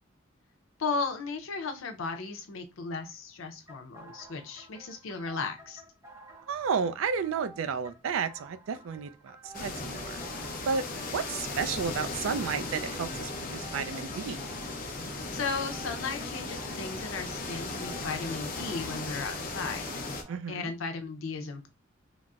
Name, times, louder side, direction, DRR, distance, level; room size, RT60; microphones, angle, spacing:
voice 1, 0.8-5.8 15.3-19.9 20.5-21.7, left 4 dB, 85° left, 0.6 m, -35 dB
sound 1, 3.7-20.4, right 2 dB, 15° right, 0.6 m, -52 dB
voice 2, 6.5-10.2 10.7-14.4 20.3-20.7, right 6 dB, 80° right, 0.4 m, -32 dB
sound 2, 9.5-20.2, left 3 dB, 45° left, 0.6 m, -37 dB
3.9 x 2.0 x 2.3 m
head